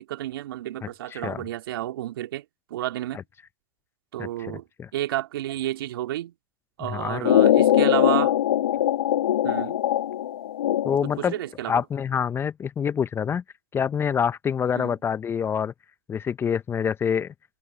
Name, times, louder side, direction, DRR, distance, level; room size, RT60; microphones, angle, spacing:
voice 1, 0.0-2.4 2.7-3.2 4.1-4.6 4.9-6.3 6.8-8.3 9.4-9.8 11.0-11.8 14.7-15.0, right 14 dB, 65° right, 2.2 m, -31 dB
voice 2, 4.2-4.9 6.9-7.3 10.8-11.3 11.7-13.4 13.7-15.7 16.1-17.3, left 7 dB, 20° left, 0.8 m, -26 dB
sound 1, 7.2-11.3, left 12 dB, 70° left, 2.4 m, -21 dB
hypercardioid pair, 115°, 13 cm